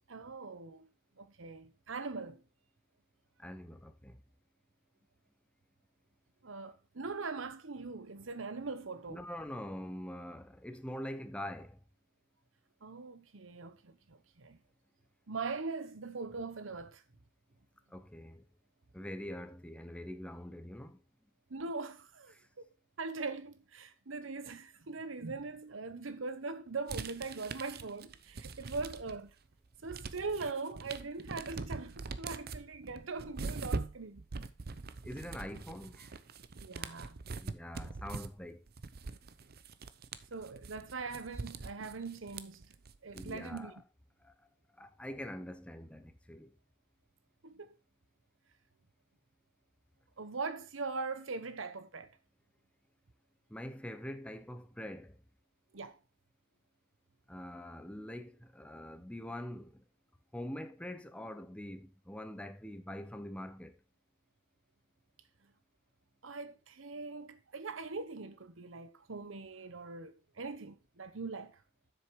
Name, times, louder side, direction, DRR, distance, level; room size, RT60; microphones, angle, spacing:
voice 1, 0.1-0.9 1.2-2.4 6.4-9.2 12.8-14.6 15.3-17.0 21.5-22.7 23.0-29.3 29.8-34.2 36.6-37.2 40.3-42.7 43.0-43.7 47.4-47.7 50.2-52.1 55.7-56.0 66.2-71.6, right 4 dB, 80° right, 1.0 m, -41 dB
voice 2, 3.4-4.2 9.1-11.8 17.9-18.4 18.9-21.0 22.3-22.5 35.0-36.2 37.4-38.6 43.1-43.8 44.2-44.3 44.8-46.6 53.5-55.2 57.3-59.8 60.3-63.8, left 1 dB, 5° left, 0.8 m, -44 dB
sound 1, 26.9-29.3 29.6-43.6, right 3 dB, 55° right, 0.7 m, -43 dB
7.7 x 6.6 x 4.8 m
head